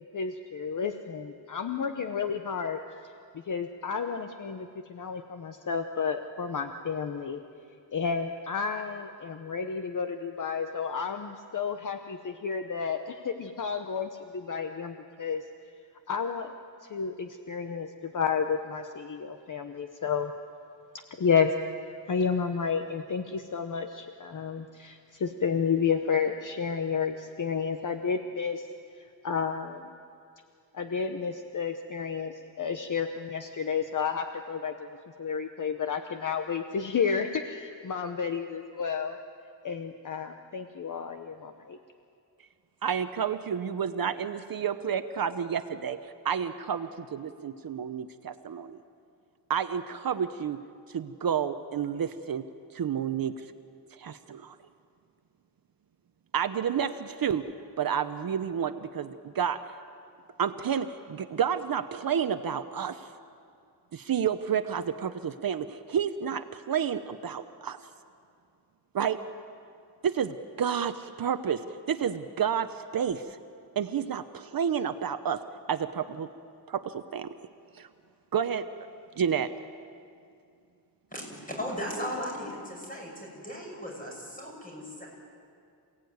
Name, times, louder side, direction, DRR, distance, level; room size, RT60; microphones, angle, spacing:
voice 1, 0.0-2.8 3.3-7.4 7.9-15.5 16.1-16.5 16.8-20.3 21.1-21.5 22.1-28.7 29.0-29.9 30.7-34.9 35.2-39.2 39.6-41.8, left 6 dB, 45° left, 7 dB, 1.0 m, -31 dB
voice 2, 42.8-48.8 49.5-50.6 50.9-52.5 52.7-53.5 53.9-54.6 56.3-57.4 57.8-59.7 60.4-63.1 63.9-67.8 68.9-69.2 70.0-73.4 73.8-75.4 75.7-76.3 76.7-77.3 77.7-77.9 78.3-78.7 79.2-79.5, right 8 dB, 55° right, 10 dB, 0.8 m, -30 dB
voice 3, 81.1-85.1, equal, 20° left, -1 dB, 6.5 m, -37 dB
27.5 x 17.5 x 9.5 m, 2.4 s
wide cardioid pair, 165°, 42 cm